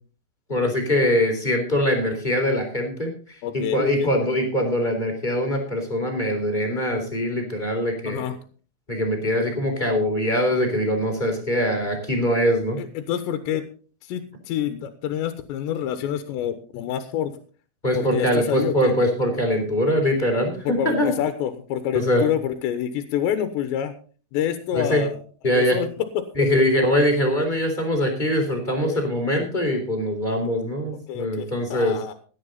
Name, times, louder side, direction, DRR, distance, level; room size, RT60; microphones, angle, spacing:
voice 1, 0.5-3.1 3.5-8.3 8.9-12.8 17.8-21.1 21.9-22.2 24.7-25.0 25.4-25.8 26.3-32.0, equal, 10° left, 2 dB, 3.4 m, -22 dB
voice 2, 3.4-4.1 8.1-8.4 12.8-13.7 14.1-17.3 18.0-18.9 20.7-23.9 24.3-26.3 28.8-29.0 30.9-32.1, left 10 dB, 80° left, 9 dB, 3.3 m, -27 dB
17.0 x 11.0 x 4.1 m, 0.39 s
omnidirectional pair, 5.1 m